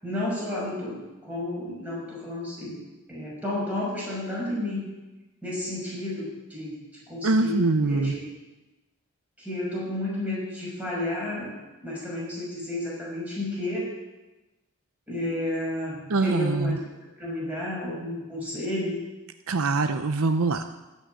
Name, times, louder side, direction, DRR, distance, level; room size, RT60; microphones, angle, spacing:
voice 1, 0.0-2.8 3.1-4.8 5.4-8.2 9.4-11.5 11.8-13.9 15.1-19.0, left 1 dB, 5° right, -6 dB, 5.7 m, -32 dB
voice 2, 7.2-8.1 16.1-16.8 19.5-20.7, right 3 dB, 70° right, 9 dB, 0.6 m, -23 dB
15.0 x 6.5 x 9.1 m, 1.1 s
head